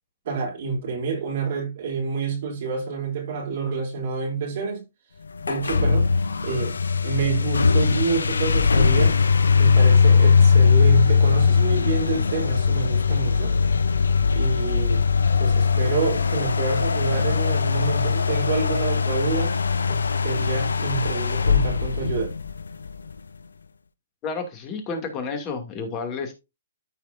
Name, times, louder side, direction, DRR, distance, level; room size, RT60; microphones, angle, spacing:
voice 1, 0.2-4.8 5.5-6.1 6.4-6.7 7.0-9.2 9.6-13.5 14.3-15.0 15.4-19.6 19.9-22.3, right 5 dB, 55° right, 3.2 m, -28 dB
sound 1, 5.4-22.9, left 5 dB, 80° left, 0.6 m, -20 dB
voice 2, 24.2-26.3, left 4 dB, 30° left, 2.5 m, -30 dB
13.5 x 4.9 x 2.6 m
hypercardioid pair, 130°, 0 cm